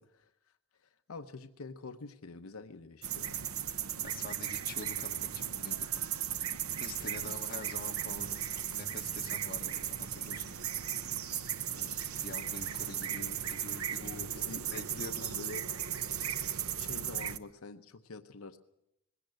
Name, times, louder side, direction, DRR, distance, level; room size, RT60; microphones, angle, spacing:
voice 1, 1.1-3.4 7.0-7.3 11.7-12.1 14.0-15.7 16.7-18.6, left 3 dB, 85° left, 7 dB, 0.9 m, -46 dB
sound 1, 3.0-17.4, right 9 dB, 85° right, 0.9 m, -36 dB
voice 2, 4.0-5.9 6.8-10.6 10.9-11.1 12.2-14.2 14.7-15.4, left 2 dB, 40° left, 2 dB, 1.7 m, -46 dB
20.5 x 17.0 x 7.9 m, 0.84 s
head